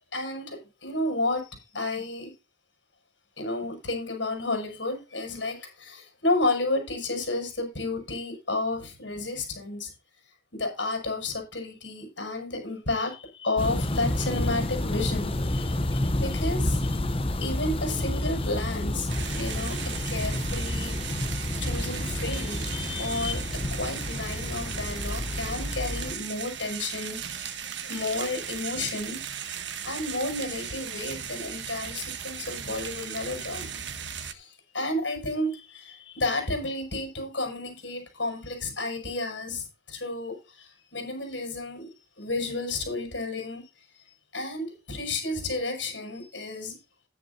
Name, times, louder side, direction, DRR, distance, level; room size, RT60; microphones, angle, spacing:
voice 1, 0.1-2.3 3.4-10.0 10.5-17.0 17.4-33.8 34.2-41.9 42.2-43.6 44.0-46.7, left 2 dB, 65° left, 7.0 m, -32 dB
sound 1, 13.6-26.2, left 1 dB, 30° left, 0.8 m, -29 dB
sound 2, 19.1-34.3, right 8 dB, 65° right, 1.3 m, -37 dB
13.0 x 11.0 x 2.8 m
head